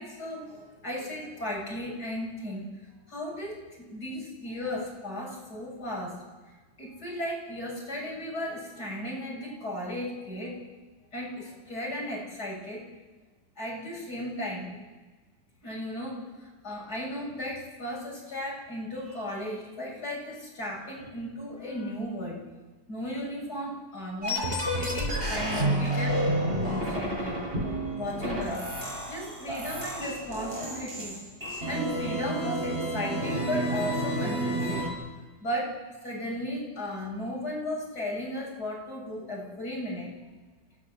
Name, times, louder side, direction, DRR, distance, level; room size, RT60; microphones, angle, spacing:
voice 1, 0.0-2.7 3.1-3.6 3.9-6.1 6.8-10.6 11.1-12.8 13.6-14.8 15.6-22.4 22.9-31.2 31.7-34.9 35.4-35.7 36.0-40.1, left 1 dB, 50° left, -3 dB, 8.3 m, -35 dB
sound 1, 24.2-34.9, right 1 dB, 25° right, 7.2 m, -30 dB
29.0 x 16.0 x 7.9 m, 1.3 s
omnidirectional pair, 2.1 m